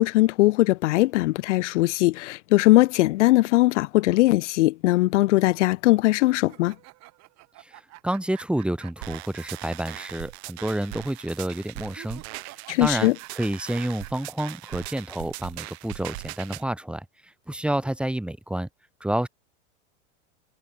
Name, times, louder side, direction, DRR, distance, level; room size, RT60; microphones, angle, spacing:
voice 1, 0.0-6.7 12.7-13.1, left 18 dB, 80° left, 0.5 m, -20 dB
sound 1, 6.4-10.1 10.4-10.5 11.9-15.0, right 20 dB, 50° right, 5.7 m, -48 dB
voice 2, 7.6-12.2 12.8-18.7 19.0-19.3, right 1 dB, 5° right, 3.3 m, -29 dB
sound 2, 9.0-16.6, right 22 dB, 65° right, 4.3 m, -40 dB
hypercardioid pair, 115°, 35 cm